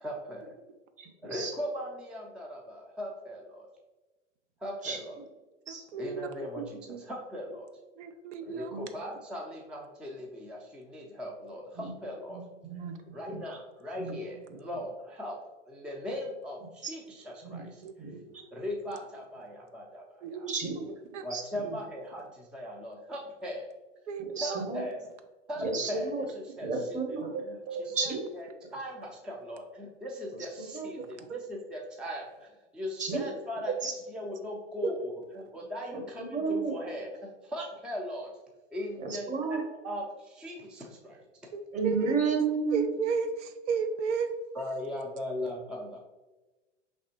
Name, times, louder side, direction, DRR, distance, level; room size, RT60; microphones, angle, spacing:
voice 1, 0.0-0.5 1.2-3.7 4.6-5.2 6.0-7.7 8.4-12.4 12.7-15.4 15.7-18.1 18.5-20.5 21.2-23.7 24.4-25.0 25.5-27.2 27.4-27.6 27.8-33.7 34.1-38.3 38.7-41.2 44.5-46.0, left 1 dB, 5° right, -1 dB, 0.4 m, -39 dB
voice 2, 1.0-1.5 4.8-5.0 5.7-5.8 8.7-8.9 11.8-11.9 12.3-13.0 13.3-13.4 13.9-14.2 17.4-17.7 18.0-18.1 20.5-20.9 21.3-21.4 24.4-24.8 25.6-26.2 26.6-27.3 28.0-28.2 30.6-30.9 33.0-33.2 33.8-33.9 35.9-36.7 39.0-39.6 41.7-42.9, right 4 dB, 20° right, 3 dB, 0.9 m, -32 dB
voice 3, 5.7-7.0 8.0-8.8 12.8-12.9 17.8-18.5 20.2-21.2 21.6-21.7 24.1-24.7 27.3-28.2 31.0-31.4 33.7-33.8 34.8-34.9 41.5-42.2 42.5-44.3, right 5 dB, 70° right, 8 dB, 0.5 m, -35 dB
4.7 x 3.3 x 2.8 m, 1.2 s
hypercardioid pair, 95°, 37 cm